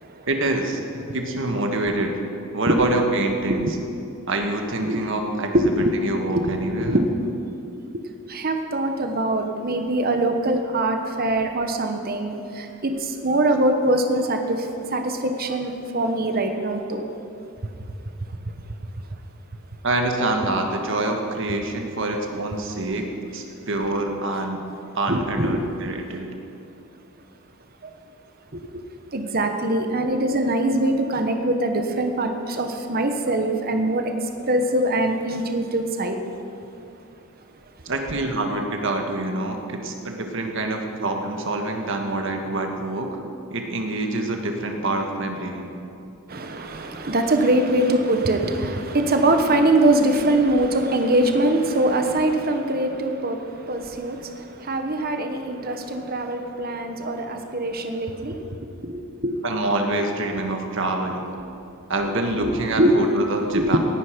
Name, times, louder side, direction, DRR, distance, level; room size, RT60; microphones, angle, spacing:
voice 1, 0.3-2.2 2.5-3.7 4.3-7.0 11.1-11.3 19.8-23.0 23.3-24.6 24.9-26.3 37.8-43.2 43.5-45.7 54.0-54.1 57.0-57.1 59.4-61.3 61.9-63.8, right 2 dB, 60° right, 3 dB, 1.6 m, -26 dB
voice 2, 5.3-5.9 6.3-7.1 7.9-8.0 8.3-14.7 14.9-17.1 25.1-25.6 25.8-26.0 28.5-28.6 29.1-34.1 34.4-36.2 46.3-59.4 62.3-63.1 63.5-63.8, right 1 dB, 45° right, 6 dB, 1.1 m, -23 dB
18.0 x 10.5 x 5.2 m, 2.7 s
head